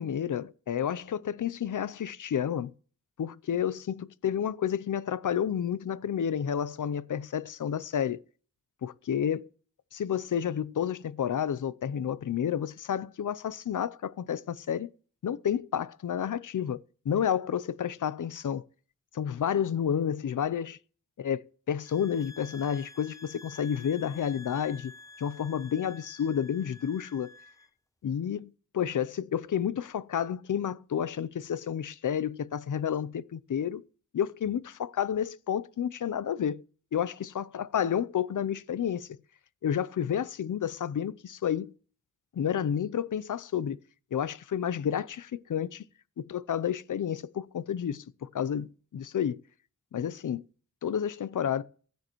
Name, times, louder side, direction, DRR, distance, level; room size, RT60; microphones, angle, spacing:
voice 1, 0.0-2.7 3.2-8.2 8.8-9.5 9.9-14.9 15.2-16.8 17.0-18.6 19.1-20.8 21.2-24.9 25.2-27.3 28.0-33.8 34.1-36.6 36.9-39.1 39.6-41.7 42.3-43.8 44.1-45.8 46.2-49.4 49.9-50.4 50.8-51.6, left 8 dB, 65° left, 0.6 m, -30 dB
sound 1, 21.8-27.7, left 2 dB, 10° left, 0.7 m, -50 dB
15.0 x 9.3 x 3.1 m
wide cardioid pair, 75°, 33 cm